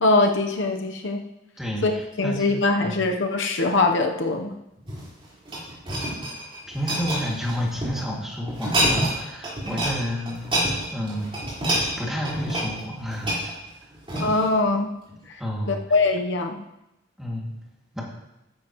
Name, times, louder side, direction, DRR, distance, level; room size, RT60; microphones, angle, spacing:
voice 1, 0.0-1.2 1.8-1.9 2.2-4.5 14.2-14.9 15.7-16.6, left 3 dB, 65° left, 4 dB, 0.9 m, -22 dB
voice 2, 1.6-3.0 6.7-11.3 11.6-13.6 15.4-15.8 17.2-17.5 17.9-18.0, equal, ahead, -3 dB, 2.3 m, -30 dB
sound 1, 4.8-8.0 8.5-9.2 9.4-9.9 10.2-14.5 15.1-15.2, right 1 dB, 30° right, 4.3 m, -27 dB
14.0 x 10.5 x 3.0 m, 0.92 s
head